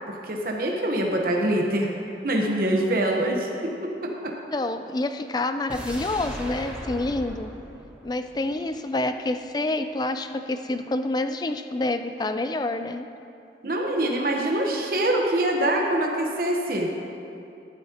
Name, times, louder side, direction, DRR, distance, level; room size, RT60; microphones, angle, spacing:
voice 1, 0.1-1.9 2.2-4.3 13.6-16.9, right 1 dB, 50° right, 0 dB, 1.1 m, -24 dB
voice 2, 4.5-7.5 8.0-13.1, left 2 dB, 25° left, 9 dB, 0.4 m, -28 dB
sound 1, 5.7-8.8 9.1-9.2, equal, 5° right, 1.2 m, -38 dB
13.0 x 12.0 x 2.9 m, 2.6 s
head